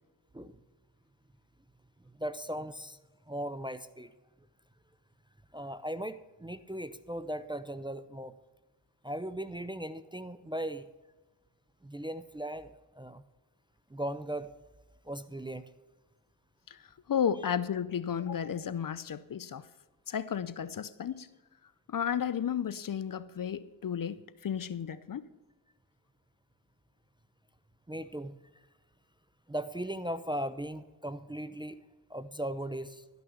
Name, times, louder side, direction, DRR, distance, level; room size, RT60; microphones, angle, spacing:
voice 1, 2.2-3.0 3.3-4.1 5.5-8.3 9.0-10.8 11.8-13.2 13.9-14.5 15.0-15.7 27.9-28.3 29.5-31.8 32.1-33.0, right 1 dB, 10° right, 0.5 m, -38 dB
voice 2, 16.7-19.7 20.1-21.3 21.9-25.3, left 8 dB, 45° left, 0.6 m, -33 dB
12.0 x 6.1 x 7.0 m
cardioid pair, 55°, 47 cm